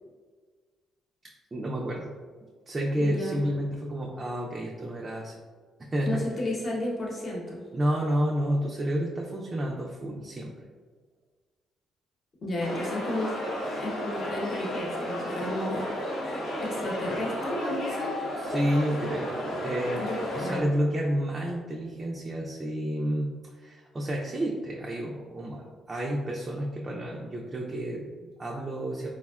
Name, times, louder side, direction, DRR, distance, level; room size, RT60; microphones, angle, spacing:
voice 1, 1.5-2.1 2.7-5.3 5.8-6.2 7.7-10.5 18.4-20.1 20.3-29.1, equal, 30° right, -3 dB, 0.3 m, -30 dB
voice 2, 3.0-3.4 6.0-7.6 12.4-13.3 13.8-15.8 16.1-16.2 16.6-18.1 20.0-20.7, left 1 dB, 45° left, -3 dB, 0.9 m, -32 dB
sound 1, 12.6-20.6, left 1 dB, 90° left, 0.6 m, -33 dB
3.4 x 2.1 x 2.3 m, 1.5 s
cardioid pair, 90°, 0 cm